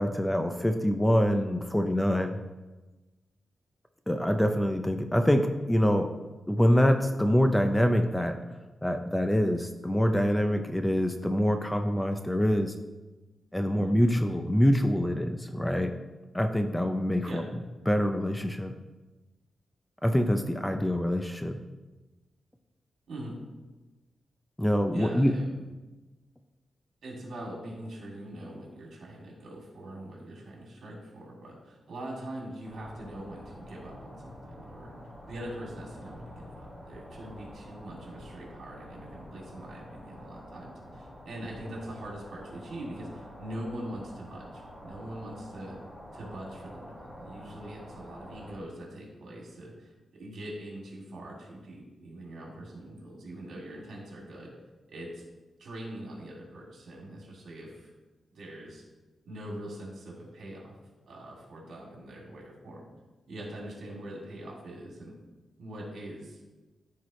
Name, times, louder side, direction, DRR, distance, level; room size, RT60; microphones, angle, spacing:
voice 1, 0.0-2.4 4.1-6.1 6.5-8.5 8.8-12.7 13.5-15.9 16.3-17.4 17.9-18.7 20.0-21.6 24.6-25.3, equal, 5° left, 6 dB, 0.4 m, -25 dB
voice 2, 24.9-25.6 27.0-34.9 35.3-45.8 46.1-54.5 54.9-55.2 55.6-57.9 58.3-58.8 59.2-60.8 61.1-62.8 63.3-65.1 65.6-66.4, right 1 dB, 70° right, -3 dB, 2.6 m, -42 dB
sound 1, 32.6-48.5, equal, 30° left, 2.6 m, -47 dB
13.5 x 4.7 x 3.1 m, 1.1 s
wide cardioid pair, 170°, 0 cm